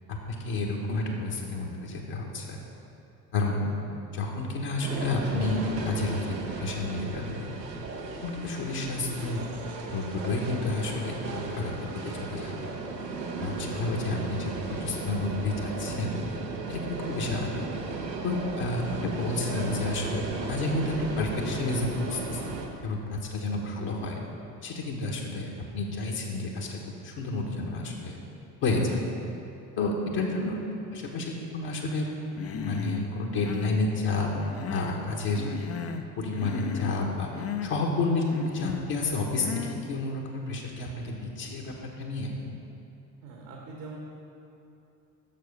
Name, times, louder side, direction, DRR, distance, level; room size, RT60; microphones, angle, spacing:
voice 1, 0.1-2.6 3.3-3.7 4.1-7.6 8.2-9.4 9.9-12.7 13.4-16.3 16.7-17.6 18.2-22.6 22.8-24.2 24.6-26.8 27.0-28.2 28.6-29.0 29.8-32.1 32.6-34.3 34.6-35.5 36.2-42.3, left 2 dB, 50° left, -1 dB, 1.3 m, -30 dB
sound 1, 4.8-22.7, right 3 dB, 90° right, 0.8 m, -35 dB
voice 2, 18.0-18.4 41.4-41.6 43.2-44.0, right 4 dB, 70° right, -1 dB, 1.3 m, -44 dB
Human voice, 32.4-33.0 33.3-33.8 34.3-35.0 35.3-36.1 36.3-37.0 37.3-37.7 38.3-38.9 39.4-39.8, left 7 dB, 30° left, 0.5 m, -35 dB
7.6 x 6.4 x 5.3 m, 2.7 s
hypercardioid pair, 60°, 49 cm